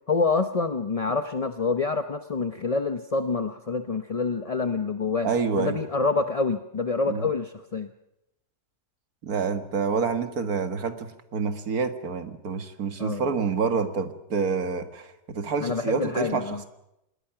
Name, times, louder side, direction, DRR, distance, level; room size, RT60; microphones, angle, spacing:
voice 1, 0.1-5.3 5.6-7.9 13.0-13.3 15.6-16.6, left 4 dB, 35° left, 8 dB, 0.6 m, -27 dB
voice 2, 5.2-5.8 7.1-7.3 9.2-16.7, right 5 dB, 65° right, 8 dB, 2.1 m, -28 dB
27.0 x 20.5 x 5.9 m, 0.85 s
omnidirectional pair, 1.7 m